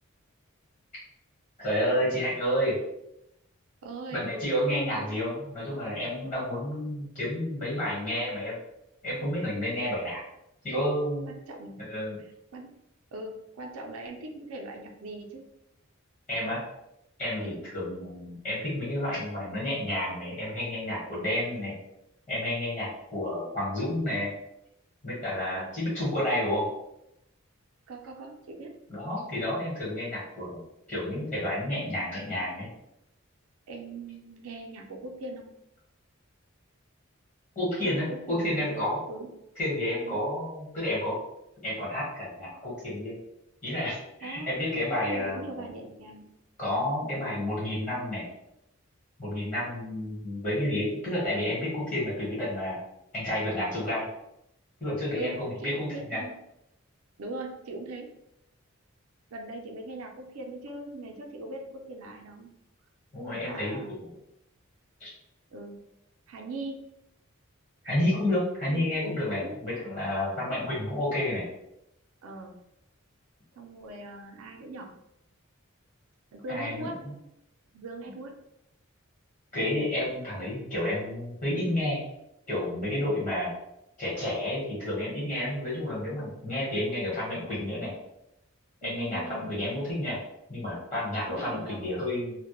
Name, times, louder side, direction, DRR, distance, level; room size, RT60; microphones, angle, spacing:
voice 1, 1.6-2.8 4.1-8.5 9.0-10.2 10.6-11.3 11.9-12.2 16.3-16.6 17.2-21.7 22.3-24.3 25.0-26.6 28.9-30.6 30.9-32.7 37.5-39.0 39.6-41.2 41.6-43.1 43.6-45.6 46.6-48.2 49.2-52.8 53.1-54.0 54.8-56.2 63.1-64.1 65.0-65.1 67.8-71.4 76.5-77.1 79.5-82.0 82.5-83.5 84.0-87.9 88.8-90.2 90.5-92.4, left 1 dB, 35° left, -7 dB, 1.0 m, -30 dB
voice 2, 3.8-4.3 11.3-11.8 12.5-12.7 13.1-15.4 17.4-17.7 25.5-25.7 27.9-28.7 33.7-35.5 37.8-39.3 40.0-40.2 44.2-44.6 44.9-46.3 47.0-47.2 55.2-55.3 55.6-56.3 57.2-58.1 59.3-62.5 63.3-64.0 65.5-65.8 66.3-66.9 68.6-68.9 69.4-69.6 70.3-70.6 72.2-72.6 73.6-74.9 76.3-77.0 77.7-78.3 83.2-83.3 88.8-89.5 91.2-91.9, right 2 dB, 85° right, 2 dB, 0.4 m, -40 dB
2.1 x 2.1 x 2.9 m, 0.83 s
head